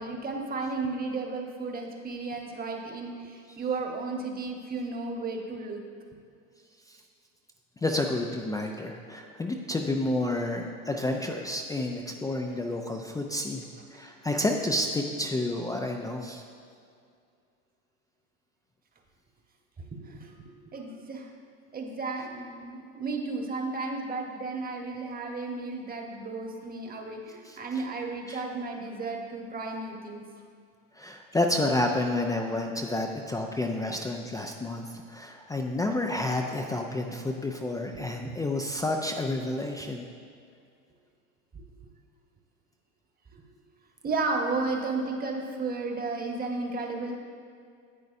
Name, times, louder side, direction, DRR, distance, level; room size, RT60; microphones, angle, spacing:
voice 1, 0.0-5.8 13.9-14.0 19.9-20.3 20.7-21.3 21.7-30.3 37.9-38.3 41.5-41.6 43.3-43.4 44.0-47.1, right 3 dB, 25° right, 2 dB, 1.2 m, -33 dB
voice 2, 7.8-16.4 27.5-27.6 28.3-28.4 31.0-40.1, left 2 dB, 10° left, 1 dB, 0.4 m, -30 dB
10.5 x 8.3 x 2.6 m, 2.3 s
hypercardioid pair, 100°, 39 cm